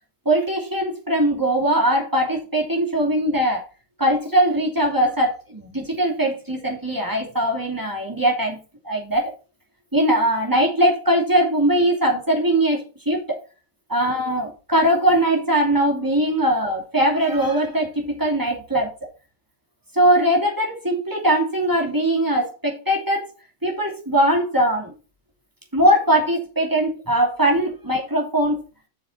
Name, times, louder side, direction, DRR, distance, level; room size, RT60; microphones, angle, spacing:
voice 1, 0.2-3.6 4.0-8.6 8.8-9.3 9.9-13.4 13.9-18.9 19.9-23.3 23.6-24.9 25.7-28.6, right 1 dB, 10° right, -1 dB, 2.6 m, -20 dB
7.8 x 6.7 x 4.2 m, 0.33 s
omnidirectional pair, 2.0 m